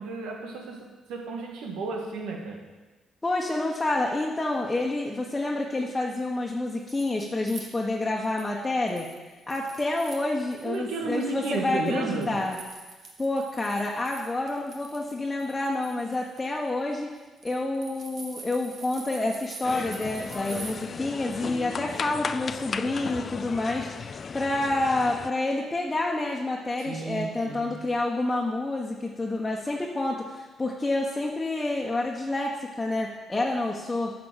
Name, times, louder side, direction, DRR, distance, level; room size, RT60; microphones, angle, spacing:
voice 1, 0.0-2.7 10.6-12.4 26.8-27.8, right 3 dB, 90° right, 2 dB, 1.8 m, -33 dB
voice 2, 3.2-9.1 9.5-12.6 13.2-17.1 17.4-23.9 24.3-34.1, left 2 dB, 20° left, -2 dB, 1.3 m, -28 dB
sound 1, 6.5-8.5 8.9-10.8 11.1-20.7, right 4 dB, 60° right, 1.7 m, -46 dB
sound 2, 19.6-25.3, left 5 dB, 45° left, 0.4 m, -35 dB
10.5 x 6.0 x 7.5 m, 1.2 s
cardioid pair, 90°, 0 cm